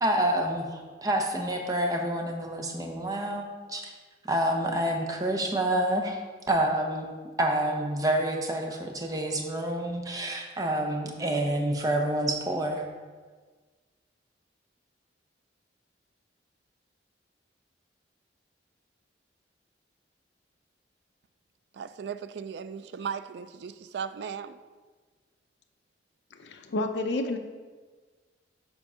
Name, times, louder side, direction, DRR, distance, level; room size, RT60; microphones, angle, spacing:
voice 1, 0.0-3.9 4.3-6.2 6.5-7.1 7.4-12.9, right 1 dB, 20° right, 2 dB, 0.7 m, -28 dB
voice 2, 21.7-24.6, right 7 dB, 65° right, 12 dB, 0.3 m, -37 dB
voice 3, 26.4-27.4, left 2 dB, 70° left, 5 dB, 0.5 m, -30 dB
7.3 x 3.7 x 5.5 m, 1.4 s
head